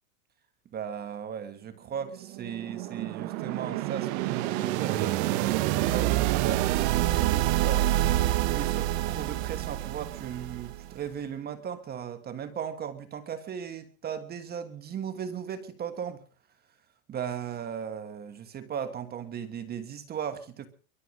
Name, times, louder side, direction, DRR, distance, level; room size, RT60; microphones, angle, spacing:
voice 1, 0.7-7.9 8.5-16.2 17.1-20.7, right 8 dB, 25° right, 1.4 m, -37 dB
sound 1, 2.1-11.0, right 15 dB, 50° right, 1.2 m, -27 dB
23.0 x 8.0 x 6.5 m
supercardioid pair, 145°, 41 cm